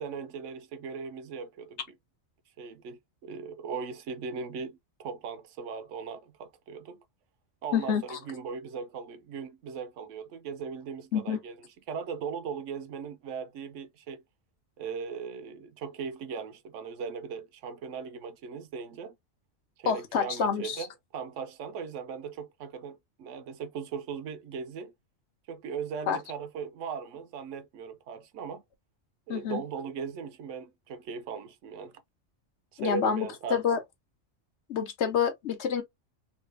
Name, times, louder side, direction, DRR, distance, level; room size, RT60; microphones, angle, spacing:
voice 1, 0.0-1.8 2.6-7.0 7.6-11.6 11.9-14.2 14.8-19.1 19.8-24.9 25.5-28.6 29.3-32.0 32.7-33.8, right 6 dB, 75° right, 0.9 m, -38 dB
voice 2, 7.7-8.2 11.1-11.4 19.9-20.9 26.1-26.2 29.3-29.6 32.8-33.8 34.7-35.8, left 7 dB, 65° left, 1.0 m, -28 dB
3.2 x 2.3 x 3.2 m
omnidirectional pair, 1.3 m